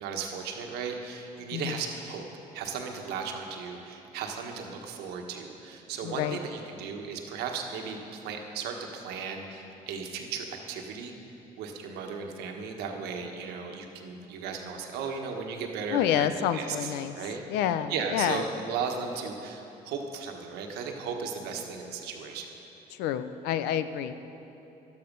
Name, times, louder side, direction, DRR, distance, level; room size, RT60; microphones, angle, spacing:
voice 1, 0.0-2.2 2.5-11.1 11.6-17.4 17.9-22.5, right 5 dB, 85° right, 3 dB, 1.4 m, -36 dB
voice 2, 6.0-6.4 15.9-17.1 17.5-18.4 22.9-24.1, left 10 dB, 85° left, 11 dB, 0.6 m, -28 dB
13.5 x 12.0 x 5.3 m, 3.0 s
supercardioid pair, 80°, 16 cm